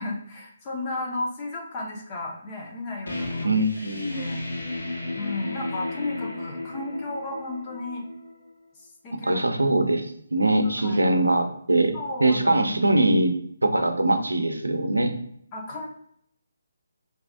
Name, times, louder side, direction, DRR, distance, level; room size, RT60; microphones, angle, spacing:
voice 1, 0.0-3.6 4.1-4.4 5.1-8.0 8.7-9.8 10.8-11.1 11.9-12.9 15.5-15.8, left 2 dB, 25° left, -2 dB, 1.3 m, -34 dB
sound 1, 3.1-8.5, left 2 dB, 70° left, 1.2 m, -34 dB
voice 2, 3.4-4.3 9.2-10.1 10.3-11.9 12.2-13.3 13.6-15.1, right 2 dB, 85° right, 7 dB, 0.7 m, -22 dB
5.6 x 2.8 x 2.6 m, 0.71 s
figure-of-eight pair, 145°, 0 cm